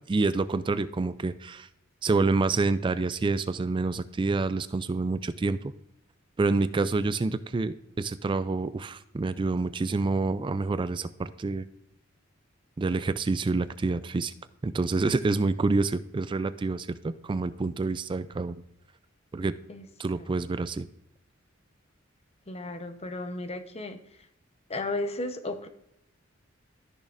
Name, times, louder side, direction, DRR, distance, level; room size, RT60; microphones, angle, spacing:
voice 1, 0.1-1.7 2.0-5.7 6.4-11.6 12.8-14.3 14.6-18.6 19.3-19.5 20.0-20.9, right 3 dB, 25° right, 13 dB, 0.3 m, -27 dB
voice 2, 22.5-24.0 24.7-25.7, left 2 dB, 30° left, 8 dB, 0.9 m, -34 dB
14.0 x 6.4 x 2.5 m, 0.80 s
head